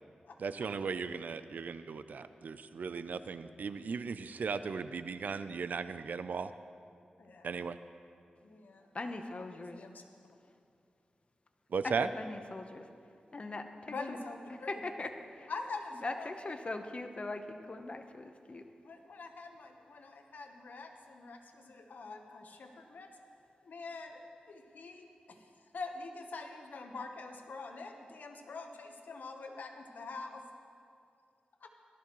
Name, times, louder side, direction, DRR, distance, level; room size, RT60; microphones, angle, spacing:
voice 1, 0.4-6.5 7.4-7.8 11.7-12.1, right 5 dB, 75° right, 12 dB, 0.5 m, -36 dB
voice 2, 7.2-7.5 8.4-10.0 13.9-14.8 15.5-16.3 18.8-23.1 23.6-25.4 25.7-30.4 31.6-31.7, left 3 dB, 80° left, 4 dB, 1.1 m, -45 dB
voice 3, 8.9-9.9 11.8-12.9 13.3-14.2 14.5-15.5 16.0-18.6, left 2 dB, 45° left, 6 dB, 0.9 m, -41 dB
17.5 x 13.0 x 3.1 m, 2.4 s
cardioid pair, 70°, 3 cm